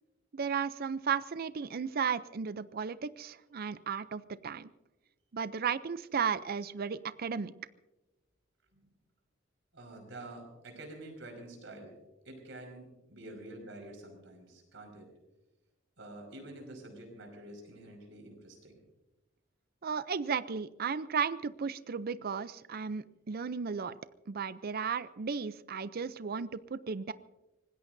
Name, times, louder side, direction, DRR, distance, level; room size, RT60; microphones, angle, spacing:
voice 1, 0.3-4.7 5.3-7.5 19.8-23.9 24.3-27.1, right 6 dB, 50° right, 15 dB, 0.5 m, -34 dB
voice 2, 9.7-12.0 12.2-15.1 16.0-18.8, right 1 dB, 70° right, 3 dB, 5.4 m, -48 dB
25.0 x 20.0 x 2.7 m, 1.0 s
head